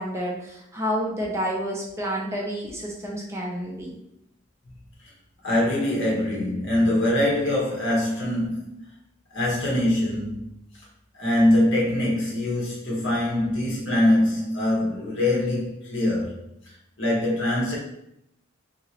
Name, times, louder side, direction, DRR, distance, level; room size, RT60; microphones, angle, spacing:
voice 1, 0.0-4.0, equal, 15° right, -3 dB, 0.5 m, -29 dB
voice 2, 5.4-8.8 9.3-10.5 11.1-17.8, left 1 dB, 65° left, -4 dB, 1.1 m, -23 dB
2.9 x 2.8 x 2.8 m, 0.80 s
head